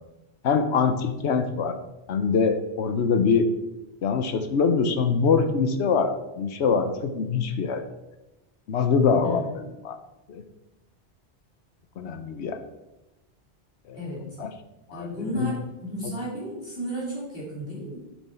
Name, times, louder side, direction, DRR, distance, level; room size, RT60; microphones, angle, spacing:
voice 1, 0.4-1.8 2.1-3.5 4.0-7.8 8.7-9.4 9.8-10.0 10.3-10.4 12.0-12.6 13.9-14.0 14.4-14.5 14.9-15.1 15.3-15.5, left 5 dB, 75° left, 9 dB, 1.0 m, -23 dB
voice 2, 13.9-14.3 14.9-18.0, equal, 55° left, -6 dB, 3.1 m, -33 dB
7.1 x 6.2 x 4.3 m, 1.0 s
omnidirectional pair, 1.2 m